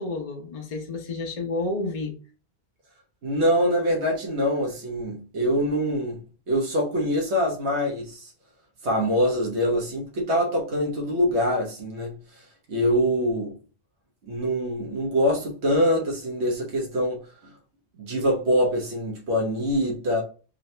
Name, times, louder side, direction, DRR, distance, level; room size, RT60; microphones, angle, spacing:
voice 1, 0.0-2.1, left 2 dB, 40° left, 0.8 m, -30 dB
voice 2, 3.2-6.2 6.5-8.3 8.8-12.2 12.7-13.5 14.3-17.2 18.0-20.2, equal, 80° right, 1.4 m, -24 dB
3.9 x 2.8 x 3.2 m
omnidirectional pair, 1.1 m